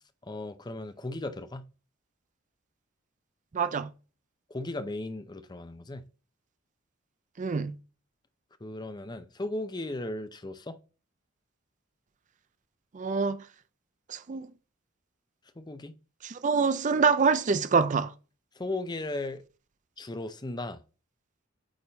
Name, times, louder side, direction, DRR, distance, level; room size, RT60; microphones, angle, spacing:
voice 1, 0.2-1.6 4.5-6.0 8.6-10.8 15.6-15.9 18.6-19.4 20.0-20.8, left 2 dB, 20° left, 0.6 m, -36 dB
voice 2, 3.5-3.9 7.4-7.7 12.9-13.4 14.1-14.5 16.2-18.1, right 5 dB, 40° right, 0.4 m, -25 dB
8.8 x 3.6 x 3.9 m
head